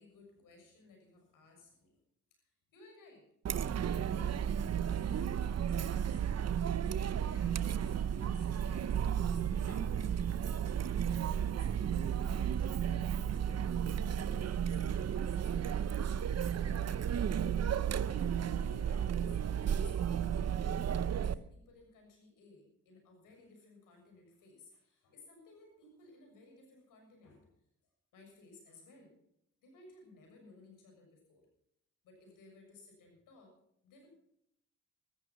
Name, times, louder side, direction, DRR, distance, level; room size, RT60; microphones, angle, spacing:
voice 1, 0.0-2.0 2.3-3.3 3.7-6.2 6.5-11.2 11.6-15.9 16.2-18.0 18.5-20.1 20.5-27.5 28.1-29.2 29.6-31.5 32.0-33.6 33.8-34.1, left 2 dB, 85° left, 2 dB, 6.9 m, -60 dB
Chatter, 3.4-21.3, right 8 dB, 55° right, 0.8 m, -33 dB
14.5 x 13.5 x 6.0 m, 0.72 s
supercardioid pair, 60°, 32 cm